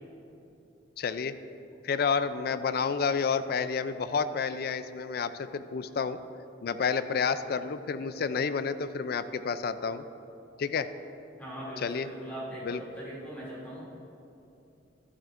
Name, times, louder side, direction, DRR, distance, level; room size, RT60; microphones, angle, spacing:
voice 1, 1.0-1.4 1.8-6.2 6.6-10.0 10.6-10.9 11.8-12.1 12.6-12.8, left 5 dB, 60° left, 12 dB, 0.4 m, -30 dB
voice 2, 11.4-13.9, equal, 10° left, -9 dB, 2.6 m, -40 dB
12.5 x 12.0 x 2.5 m, 2.8 s
head